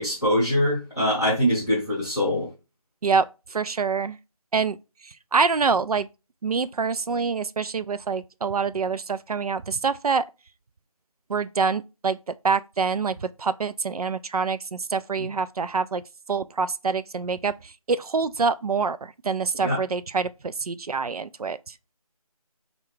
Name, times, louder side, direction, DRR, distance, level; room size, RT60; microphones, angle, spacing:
voice 1, 0.0-2.5 19.6-19.8, equal, 10° left, 0.7 m, -23 dB
voice 2, 3.0-4.2 4.5-4.8 5.0-6.1 6.4-10.3 11.3-12.2 12.4-16.0 16.3-21.7, right 5 dB, 75° right, 0.4 m, -26 dB
4.3 x 2.3 x 3.8 m
figure-of-eight pair, 170°, 19 cm